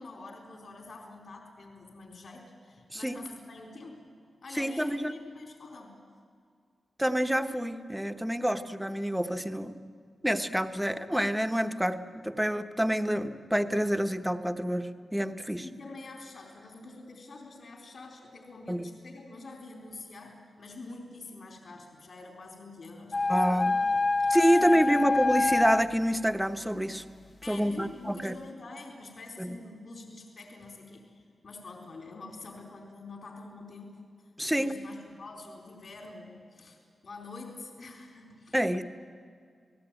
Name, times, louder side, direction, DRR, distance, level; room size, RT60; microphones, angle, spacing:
voice 1, 0.0-4.1 4.4-6.0 15.5-25.0 27.4-34.0 34.4-38.6, left 3 dB, 65° left, 1 dB, 4.1 m, -46 dB
voice 2, 4.5-5.1 7.0-9.7 10.2-15.6 18.7-18.9 23.3-23.8 24.3-27.0 27.5-28.4 29.4-29.6 34.4-34.7 38.5-38.8, equal, 5° right, 8 dB, 1.1 m, -27 dB
sound 1, 23.1-25.8, left 3 dB, 35° left, 0.6 m, -26 dB
30.0 x 19.0 x 9.0 m, 2.1 s
wide cardioid pair, 120°, 0 cm